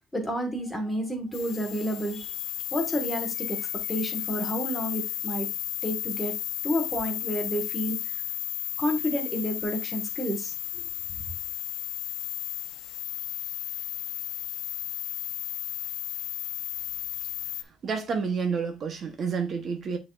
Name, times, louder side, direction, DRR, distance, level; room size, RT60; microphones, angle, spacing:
voice 1, 0.1-2.3 2.7-5.5 5.8-6.3 6.6-8.0 8.8-10.8 11.1-11.3, equal, 5° left, 1.6 m, -30 dB
sound 1, 1.3-17.6, left 13 dB, 90° left, 0.6 m, -34 dB
voice 2, 17.8-20.0, right 5 dB, 35° right, 0.9 m, -29 dB
9.3 x 4.1 x 2.4 m
cardioid pair, 170°, 0 cm